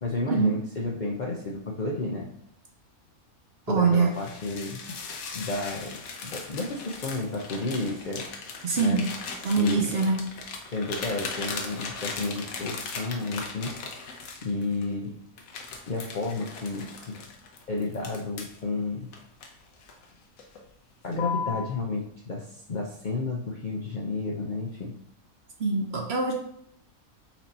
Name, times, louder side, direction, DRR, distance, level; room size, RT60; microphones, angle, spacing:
voice 1, 0.0-2.3 3.7-5.0 5.3-8.2 8.8-9.0 9.5-9.9 10.7-13.8 14.4-15.1 15.9-17.2 17.7-19.1 21.0-24.9, left 3 dB, 55° left, -2 dB, 0.5 m, -31 dB
voice 2, 3.7-4.1 8.6-9.0 9.4-10.2 25.6-26.3, right 4 dB, 60° right, 2 dB, 0.7 m, -23 dB
sound 1, 4.1-14.9 15.4-18.6 19.1-20.0 20.4-20.7 21.1-21.7, left 4 dB, 75° left, 1.2 m, -38 dB
4.4 x 2.7 x 4.2 m, 0.71 s
omnidirectional pair, 1.5 m